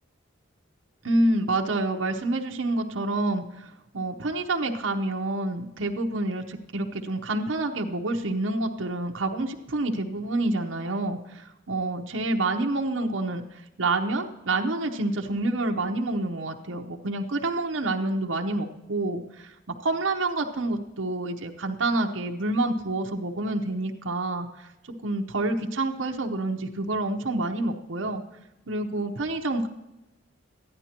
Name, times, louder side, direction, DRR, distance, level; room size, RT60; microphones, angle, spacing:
voice 1, 1.0-19.5 19.8-24.7 25.0-28.2 28.7-29.7, right 2 dB, 75° right, 2 dB, 0.9 m, -28 dB
14.5 x 11.0 x 2.9 m, 0.97 s
head